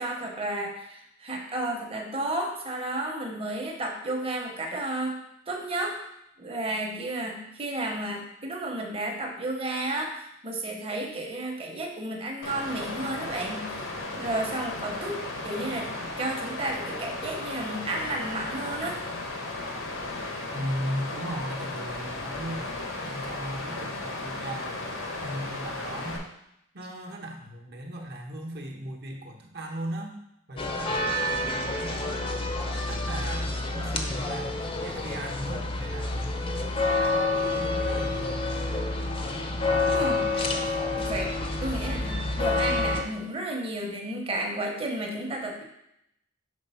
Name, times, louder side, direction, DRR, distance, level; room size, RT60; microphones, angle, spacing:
voice 1, 0.0-5.2 5.5-6.0 6.4-15.9 16.2-19.0 39.9-45.6, right 1 dB, 30° right, 1 dB, 1.0 m, -32 dB
Water, 12.4-26.2, left 2 dB, 80° left, 1.0 m, -35 dB
voice 2, 20.5-24.8 25.2-26.3 26.7-30.2 30.5-32.2 32.9-38.4, equal, 55° right, 1 dB, 1.0 m, -37 dB
sound 1, 30.6-43.0, left 2 dB, 25° left, 0.6 m, -28 dB
5.3 x 3.8 x 5.6 m, 0.79 s
head